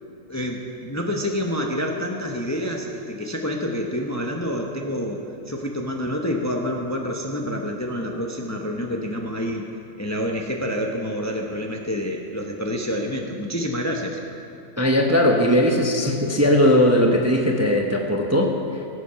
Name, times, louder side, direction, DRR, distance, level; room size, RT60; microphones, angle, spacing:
voice 1, 0.3-9.7 10.0-14.2, equal, 15° left, 0 dB, 0.8 m, -28 dB
voice 2, 14.8-18.9, left 1 dB, 15° right, 1 dB, 0.8 m, -19 dB
18.0 x 8.1 x 5.7 m, 2.8 s
omnidirectional pair, 1.3 m